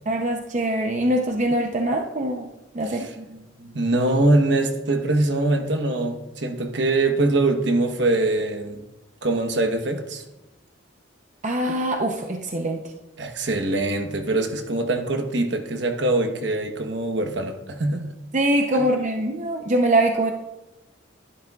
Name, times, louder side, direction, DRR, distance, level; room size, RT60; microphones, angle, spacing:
voice 1, 0.1-2.5 2.7-3.1 11.4-12.8 18.3-20.3, right 1 dB, 40° right, 0.7 m, -23 dB
voice 2, 2.8-8.8 9.2-10.2 13.2-18.0, right 2 dB, 65° right, 1.1 m, -23 dB
12.5 x 11.5 x 2.4 m
head